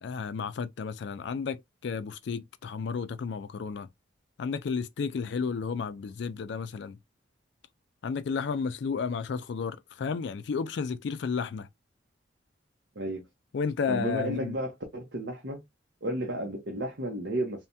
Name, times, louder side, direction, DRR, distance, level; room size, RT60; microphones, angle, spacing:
voice 1, 0.0-3.9 4.4-7.0 8.0-11.7 13.5-14.6, left 5 dB, 65° left, 0.4 m, -32 dB
voice 2, 13.9-15.6 16.0-17.7, right 1 dB, 65° right, 0.8 m, -32 dB
3.2 x 2.2 x 2.6 m
head